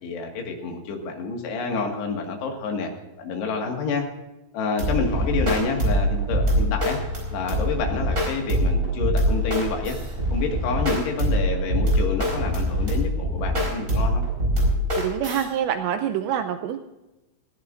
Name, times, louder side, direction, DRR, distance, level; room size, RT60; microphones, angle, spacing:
voice 1, 0.0-2.9 3.2-4.1 4.5-7.0 7.3-10.0 10.3-14.3, left 4 dB, 65° left, 2 dB, 3.7 m, -28 dB
sound 1, 4.8-15.4, equal, 15° right, 4.4 m, -23 dB
voice 2, 15.0-16.8, right 9 dB, 80° right, 8 dB, 2.6 m, -26 dB
20.5 x 15.5 x 2.6 m, 1.0 s
omnidirectional pair, 5.7 m